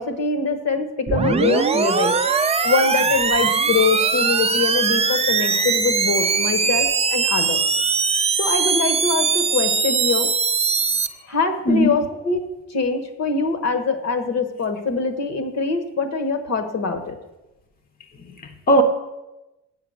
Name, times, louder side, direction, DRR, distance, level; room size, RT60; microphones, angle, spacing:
voice 1, 0.0-2.2 2.6-7.6 8.4-10.3 11.3-12.4 12.7-17.1, left 4 dB, 55° left, 8 dB, 1.3 m, -23 dB
sound 1, 1.1-11.1, right 5 dB, 20° right, 0.4 m, -21 dB
voice 2, 11.7-12.0 18.2-18.8, equal, 30° left, 5 dB, 0.8 m, -19 dB
7.5 x 5.9 x 6.4 m, 1.0 s
cardioid pair, 90°, 30 cm